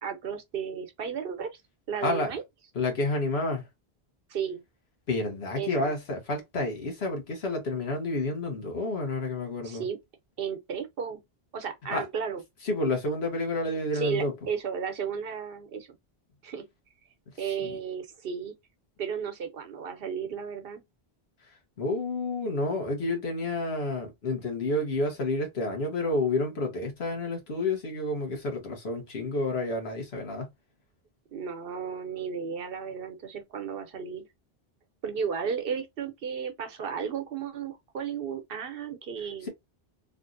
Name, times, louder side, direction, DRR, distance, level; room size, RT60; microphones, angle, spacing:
voice 1, 0.0-1.6 1.9-2.4 4.3-4.6 5.6-5.9 9.6-10.0 10.4-11.2 11.5-12.4 13.9-15.9 16.4-16.7 17.4-18.5 19.0-20.8 31.3-34.2 35.0-39.5, right 7 dB, 65° right, 0.9 m, -34 dB
voice 2, 2.0-2.3 2.7-3.6 5.1-9.8 11.9-12.0 12.6-14.3 21.8-30.5, left 2 dB, 80° left, 1.4 m, -29 dB
3.2 x 2.5 x 2.5 m
omnidirectional pair, 1.0 m